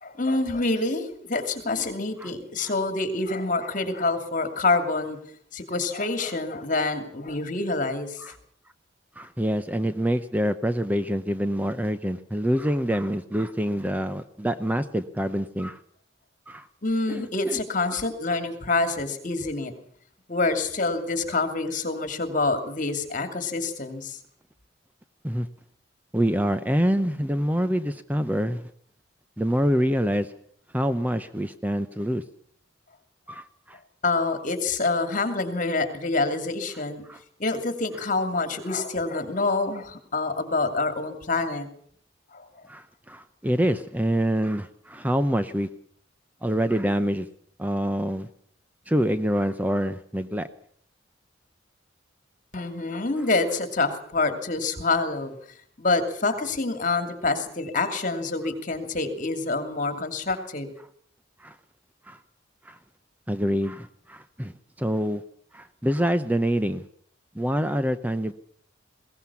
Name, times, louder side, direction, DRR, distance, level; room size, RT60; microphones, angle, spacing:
voice 1, 0.0-5.2 5.5-8.2 16.8-19.7 20.3-24.2 34.0-37.0 37.4-41.7 42.3-42.5 52.5-55.3 55.8-60.7, left 3 dB, 40° left, 8 dB, 2.8 m, -26 dB
voice 2, 9.2-15.8 16.5-16.7 17.1-17.6 17.9-18.0 25.2-25.5 26.1-28.7 29.4-30.3 30.7-32.2 33.3-33.8 37.1-37.2 42.7-45.7 46.4-47.3 47.6-48.3 48.9-50.5 61.4-61.6 62.1-62.2 62.6-62.8 63.3-65.2 65.5-66.8 67.3-68.3, equal, 10° right, 10 dB, 0.7 m, -26 dB
21.0 x 17.5 x 7.1 m, 0.63 s
head